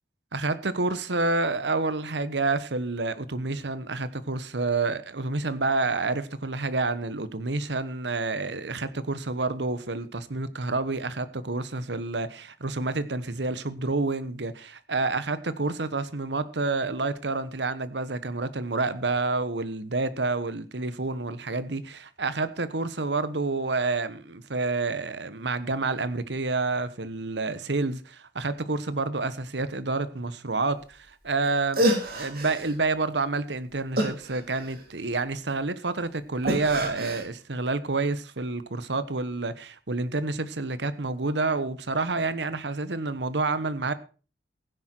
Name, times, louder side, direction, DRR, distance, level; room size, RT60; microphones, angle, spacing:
voice 1, 0.3-43.9, right 3 dB, 85° right, 1.2 m, -29 dB
sound 1, 31.4-31.5 31.7-32.7 34.0-35.0 36.4-37.2, equal, 60° right, 3.7 m, -27 dB
15.5 x 10.0 x 4.6 m
head